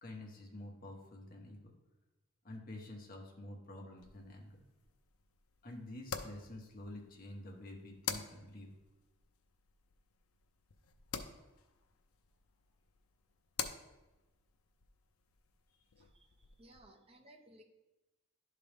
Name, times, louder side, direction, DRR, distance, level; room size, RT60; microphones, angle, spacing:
voice 1, 0.0-1.7 2.4-4.6 5.6-8.7, left 1 dB, 40° left, 0 dB, 1.1 m, -49 dB
sound 1, 4.0-16.8, left 7 dB, 85° left, 0.6 m, -48 dB
voice 2, 16.0-17.6, right 1 dB, 25° right, 3 dB, 0.7 m, -61 dB
11.5 x 3.8 x 3.4 m, 1.1 s
head